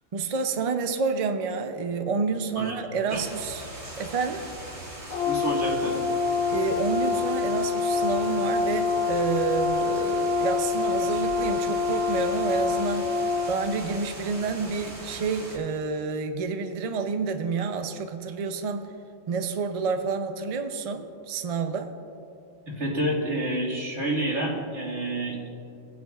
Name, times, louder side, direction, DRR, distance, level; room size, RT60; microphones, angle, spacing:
voice 1, 0.1-3.7 4.0-4.4 6.5-13.1 13.5-18.9 19.3-21.9, right 4 dB, 45° right, 7 dB, 0.5 m, -29 dB
sound 1, 3.1-15.6, right 1 dB, 70° right, 2.4 m, -41 dB
Brass instrument, 5.1-13.5, left 4 dB, 70° left, 1.1 m, -26 dB
voice 2, 5.3-6.0 22.7-25.5, right 1 dB, 90° right, -4 dB, 2.5 m, -28 dB
17.5 x 9.4 x 2.4 m, 2.6 s
omnidirectional pair, 1.2 m